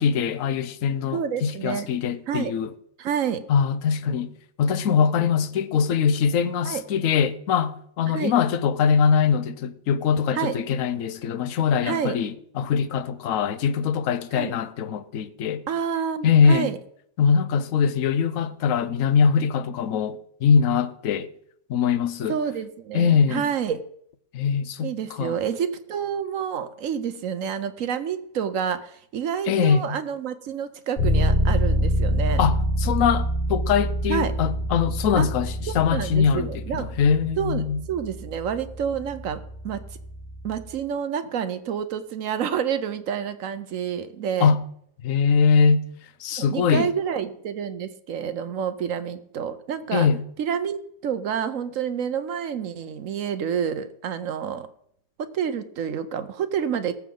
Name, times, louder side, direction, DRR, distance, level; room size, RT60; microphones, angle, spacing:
voice 1, 0.0-2.7 3.5-4.3 4.6-15.6 16.2-16.7 17.2-21.3 21.7-22.4 22.9-23.4 24.3-24.9 25.2-25.3 29.5-30.0 32.4-36.5 36.7-37.8 44.4-44.6 45.0-45.8 46.2-46.9 49.9-50.2, left 6 dB, 60° left, 0.9 m, -22 dB
voice 2, 1.1-1.9 2.3-2.5 3.0-3.4 6.6-6.8 8.1-8.3 10.3-10.6 11.8-12.2 14.3-14.5 15.7-16.8 22.3-23.8 24.8-32.4 34.1-34.3 35.2-35.3 35.9-36.9 37.4-37.6 37.9-39.8 40.4-44.5 46.4-50.1 50.4-54.7 55.2-56.9, right 8 dB, 60° right, 0.9 m, -28 dB
Bass guitar, 31.0-40.7, equal, 25° left, 5.4 m, -26 dB
18.5 x 7.2 x 3.8 m
omnidirectional pair, 2.0 m